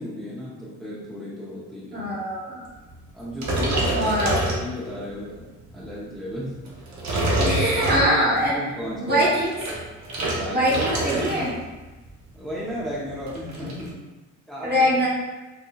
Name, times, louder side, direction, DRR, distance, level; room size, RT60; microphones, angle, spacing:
voice 1, 0.0-2.1 3.1-4.2 4.5-6.7 7.3-8.1 8.4-9.2 10.3-10.6 11.0-11.5 12.3-14.0 14.5-14.8, equal, ahead, -8 dB, 0.8 m, -34 dB
voice 2, 1.9-2.6 4.0-4.4 7.4-8.5 9.0-9.5 10.5-11.5 14.6-15.1, equal, 30° right, -6 dB, 1.3 m, -22 dB
sound 1, 3.4-5.1 5.6-5.9 6.7-8.5 9.3-11.6 11.8-12.1 12.4-12.5 12.8-13.9, right 1 dB, 65° right, 0.9 m, -26 dB
4.0 x 2.7 x 2.3 m, 1.2 s
cardioid pair, 90°, 30 cm